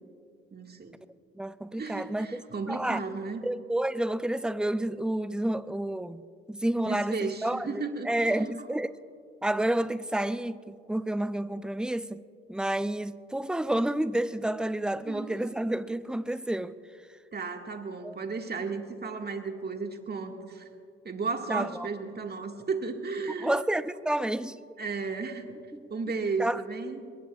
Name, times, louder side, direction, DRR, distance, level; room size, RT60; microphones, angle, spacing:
voice 1, 0.5-1.0 1.8-3.4 6.9-8.6 15.1-15.4 17.3-20.7 21.0-23.6 24.8-25.6 25.9-27.1, right 4 dB, 30° right, 1.9 m, -34 dB
voice 2, 1.3-2.4 2.7-3.0 3.4-6.2 6.5-8.9 9.4-12.2 12.5-16.8 18.0-18.2 21.5-21.9 23.3-24.6 25.7-25.9 26.4-26.6, right 1 dB, 5° right, 0.5 m, -30 dB
25.0 x 21.5 x 2.4 m
hypercardioid pair, 50°, 31 cm